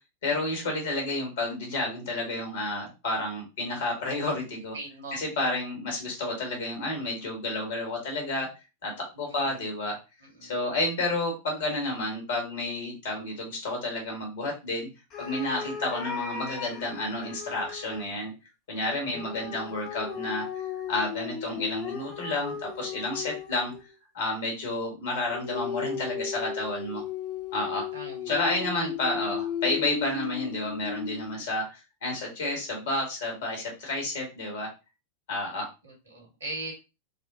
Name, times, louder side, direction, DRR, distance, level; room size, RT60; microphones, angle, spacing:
voice 1, 0.2-4.7 5.1-8.5 8.8-10.0 10.4-14.9 15.2-18.3 18.7-20.5 20.9-23.7 24.1-27.0 27.5-27.9 28.3-34.7 35.3-35.7, left 2 dB, 60° left, 0 dB, 1.6 m, -30 dB
voice 2, 4.7-5.2 9.2-9.6 10.2-10.5 19.1-19.7 27.9-28.9 35.8-36.7, right 2 dB, 75° right, 0 dB, 1.6 m, -41 dB
sound 1, 15.1-18.1 19.1-23.9 25.3-31.4, left 7 dB, 30° left, 0.8 m, -36 dB
4.1 x 2.2 x 2.6 m, 0.28 s
figure-of-eight pair, 90°, 0 cm